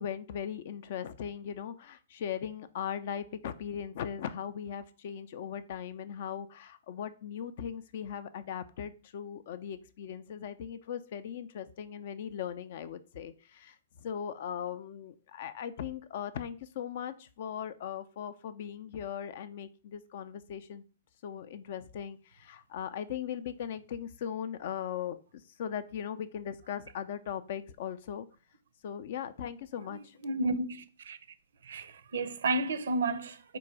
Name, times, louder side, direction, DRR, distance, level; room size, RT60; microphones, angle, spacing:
voice 1, 0.0-20.8 21.2-25.2 25.6-28.3 28.8-30.2, left 8 dB, 55° left, 0.4 m, -39 dB
voice 2, 30.2-31.2 31.6-33.6, right 2 dB, 70° right, 0.5 m, -32 dB
4.5 x 2.6 x 4.4 m
hypercardioid pair, 120°, 0 cm